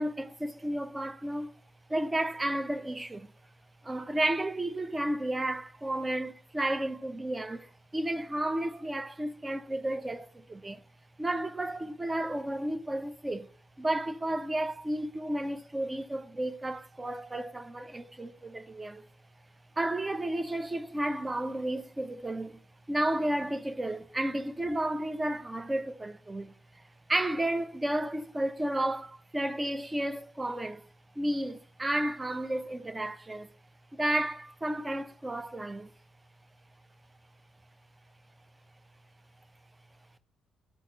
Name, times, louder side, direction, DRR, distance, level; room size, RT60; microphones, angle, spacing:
voice 1, 0.0-1.5 1.9-3.3 3.8-10.8 11.2-13.5 13.8-19.0 19.8-22.6 22.9-26.5 27.1-30.8 31.1-33.5 33.9-35.9, right 1 dB, 20° right, 1.0 m, -32 dB
12.0 x 4.1 x 4.0 m
figure-of-eight pair, 45°, 0 cm